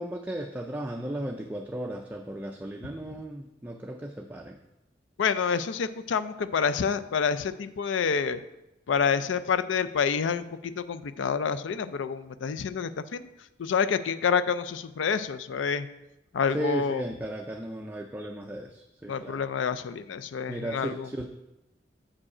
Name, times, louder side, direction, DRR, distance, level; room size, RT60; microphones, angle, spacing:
voice 1, 0.0-4.6 16.5-19.4 20.5-21.3, right 1 dB, 10° right, 3 dB, 0.3 m, -35 dB
voice 2, 5.2-8.4 8.9-13.2 13.6-15.9 16.3-17.0 19.1-21.1, left 6 dB, 75° left, 13 dB, 0.4 m, -28 dB
7.4 x 4.9 x 4.8 m, 0.93 s
head